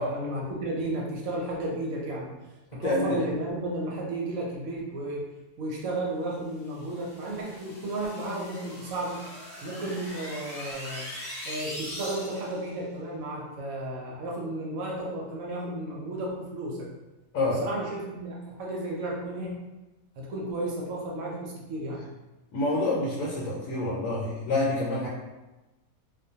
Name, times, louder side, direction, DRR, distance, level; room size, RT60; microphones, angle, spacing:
voice 1, 0.0-2.3 2.7-5.2 5.6-9.2 9.6-11.0 11.4-16.9 17.4-19.5 20.2-22.0, right 1 dB, 70° right, -3 dB, 0.9 m, -33 dB
voice 2, 2.7-3.2 17.3-17.6 22.5-25.1, left 2 dB, 75° left, -5 dB, 1.0 m, -27 dB
sound 1, 6.7-12.7, equal, 40° left, 0.5 m, -41 dB
2.4 x 2.2 x 2.7 m, 1.1 s
omnidirectional pair, 1.6 m